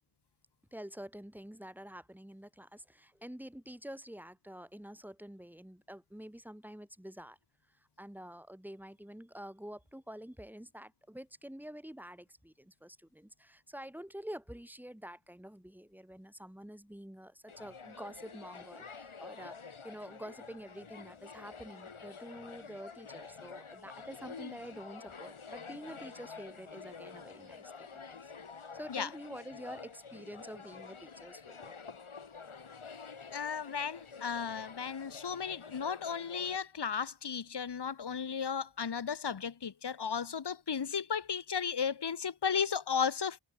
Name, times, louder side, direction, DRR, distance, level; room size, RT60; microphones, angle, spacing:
voice 1, 0.7-7.4 7.8-31.7, equal, 5° right, 2.0 m, -48 dB
sound 1, 17.5-36.6, left 5 dB, 85° left, 4.5 m, -48 dB
voice 2, 33.3-43.4, left 6 dB, 55° left, 1.2 m, -34 dB
wide cardioid pair, 80°, 48 cm